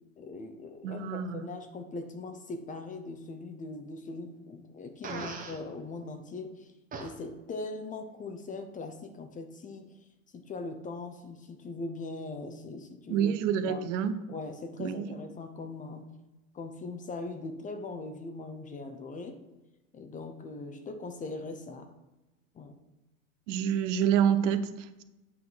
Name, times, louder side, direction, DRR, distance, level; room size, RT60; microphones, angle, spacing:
voice 1, 0.2-6.7 7.0-10.0 10.3-13.3 13.7-13.8 14.3-16.1 16.5-19.4 19.9-21.9 22.5-22.7, left 3 dB, 20° left, 7 dB, 0.7 m, -40 dB
voice 2, 0.8-1.4 13.1-14.1 14.8-15.1 23.5-25.0, right 8 dB, 60° right, 11 dB, 0.8 m, -28 dB
Fart, 5.0-5.6 6.9-7.1, right 4 dB, 20° right, 1.1 m, -38 dB
8.5 x 3.7 x 6.2 m, 1.0 s
supercardioid pair, 125°, 41 cm